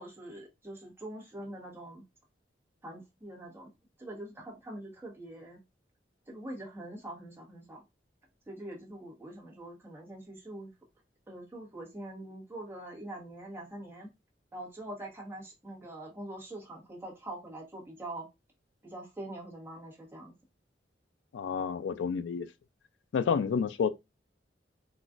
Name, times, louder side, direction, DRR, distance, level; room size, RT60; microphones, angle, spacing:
voice 1, 0.0-2.0 2.8-3.7 4.0-5.6 6.3-7.8 8.5-10.7 11.3-14.1 14.5-18.3 18.8-20.3, right 1 dB, 15° right, 1.1 m, -44 dB
voice 2, 21.3-22.5 23.1-23.9, left 6 dB, 85° left, 0.3 m, -29 dB
4.0 x 2.4 x 2.3 m
head